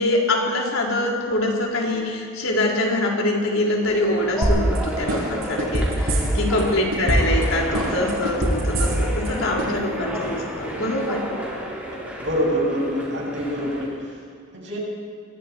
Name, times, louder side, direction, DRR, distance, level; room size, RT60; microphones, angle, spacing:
voice 1, 0.0-11.2, left 1 dB, 80° left, -2 dB, 4.3 m, -24 dB
sound 1, 3.8-14.0, equal, 5° right, 4.6 m, -32 dB
sound 2, 4.4-4.8 5.1-6.6 6.9-7.4 7.7-9.3 9.6-9.7, right 1 dB, 80° right, 7.9 m, -21 dB
voice 2, 12.2-13.8 14.5-14.8, equal, 60° right, -2 dB, 6.9 m, -25 dB
28.0 x 21.5 x 4.7 m, 2.2 s
head